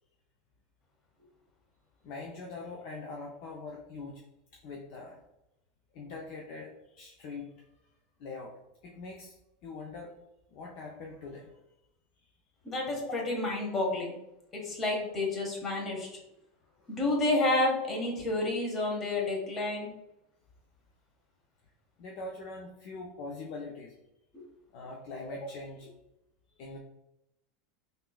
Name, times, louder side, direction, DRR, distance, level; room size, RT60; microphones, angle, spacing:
voice 1, 2.0-4.2 4.6-5.2 5.9-7.5 8.2-8.6 8.8-9.4 9.6-10.1 10.5-11.6 13.1-13.2 16.8-17.0 22.0-24.0 24.7-25.9 26.6-26.8, left 3 dB, 55° left, -1 dB, 0.4 m, -42 dB
voice 2, 12.6-14.1 14.5-16.2 16.9-19.9 24.3-24.4, left 2 dB, 30° left, -1 dB, 1.1 m, -30 dB
3.5 x 2.6 x 2.3 m, 0.89 s
figure-of-eight pair, 85°, 0 cm